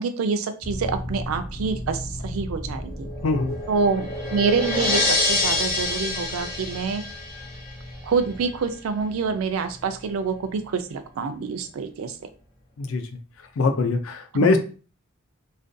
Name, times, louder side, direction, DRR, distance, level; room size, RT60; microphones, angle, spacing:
voice 1, 0.0-3.1 3.7-7.0 8.0-12.1 14.3-14.6, right 5 dB, 75° right, 8 dB, 0.4 m, -26 dB
sound 1, 0.6-11.9 12.2-12.3, left 1 dB, 20° left, 0.5 m, -37 dB
sound 2, 2.8-8.0, left 2 dB, 45° left, 0.8 m, -27 dB
voice 2, 3.2-3.5 12.8-13.1 13.6-14.6, left 3 dB, 70° left, 7 dB, 0.4 m, -22 dB
2.4 x 2.2 x 2.5 m, 0.37 s
head